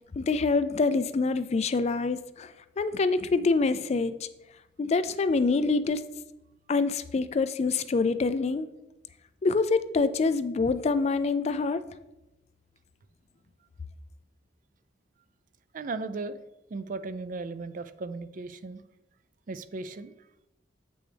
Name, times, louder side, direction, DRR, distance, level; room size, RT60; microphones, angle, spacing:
voice 1, 0.1-4.1 4.8-6.0 6.7-8.7 9.4-11.8, left 4 dB, 35° left, 12 dB, 0.3 m, -26 dB
voice 2, 15.7-16.4 16.7-18.8 19.5-20.1, right 3 dB, 45° right, 12 dB, 0.4 m, -36 dB
8.2 x 6.1 x 3.4 m, 0.93 s
head